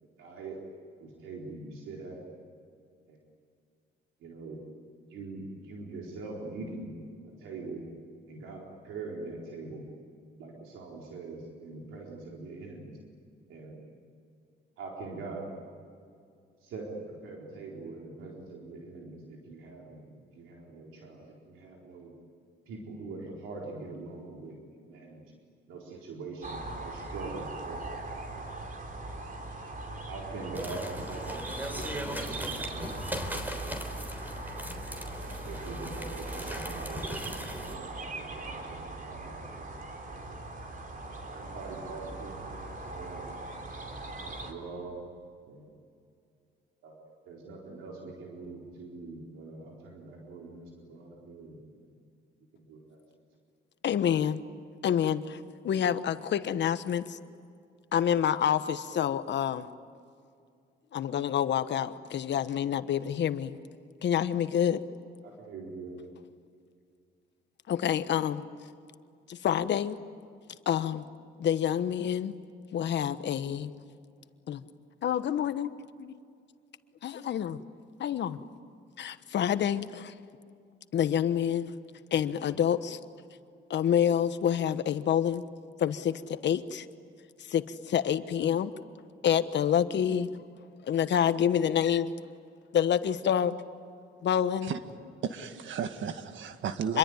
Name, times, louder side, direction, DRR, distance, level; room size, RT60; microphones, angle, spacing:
voice 1, 0.2-0.6 1.0-2.2 3.1-3.2 4.2-4.6 5.1-6.9 7.4-7.8 8.3-9.8 10.4-13.0 13.5-13.8 14.8-15.5 16.6-22.1 22.7-25.2 25.7-28.0 28.3-28.4 30.1-34.1 35.4-39.7 40.1-40.3 41.0-43.3 44.0-45.0 45.5-45.7 46.8-47.0 47.3-51.9 52.7-53.0 65.2-66.0, right 3 dB, 90° right, -2 dB, 4.3 m, -43 dB
sound 1, 26.4-44.5, right 2 dB, 45° right, 4.1 m, -40 dB
sound 2, 30.5-37.7, equal, 10° right, 3.6 m, -39 dB
voice 2, 53.8-54.4 54.8-57.2 57.9-59.7 60.9-63.6 64.0-64.8 67.7-68.4 69.3-70.0 70.7-71.0 71.4-72.3 72.7-73.7 74.5-74.6 75.0-76.2 77.0-77.6 78.0-78.4 79.0-80.1 80.9-81.7 82.1-83.0 83.7-85.4 85.8-86.8 87.5-88.7 89.2-90.3 90.8-92.1 92.7-93.5 94.2-94.7 96.9-97.0, left 9 dB, 65° left, 12 dB, 1.2 m, -27 dB
voice 3, 95.2-97.0, right 7 dB, 70° right, 9 dB, 1.8 m, -34 dB
27.5 x 22.5 x 9.6 m, 2.3 s
cardioid pair, 90°, 20 cm